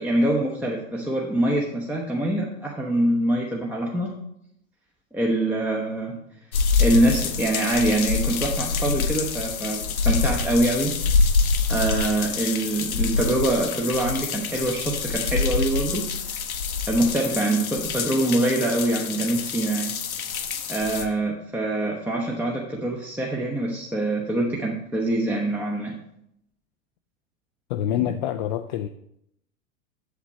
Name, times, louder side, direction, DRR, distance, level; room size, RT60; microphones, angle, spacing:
voice 1, 0.0-4.1 5.1-6.2 6.8-10.9 11.7-16.4 16.9-19.9 20.7-26.0, right 1 dB, 5° right, -1 dB, 0.8 m, -24 dB
sound 1, 6.5-21.1, left 5 dB, 75° left, 0.9 m, -26 dB
voice 2, 27.7-28.9, left 11 dB, 35° left, 8 dB, 0.4 m, -26 dB
8.2 x 7.0 x 4.2 m, 0.76 s
figure-of-eight pair, 90°, 42 cm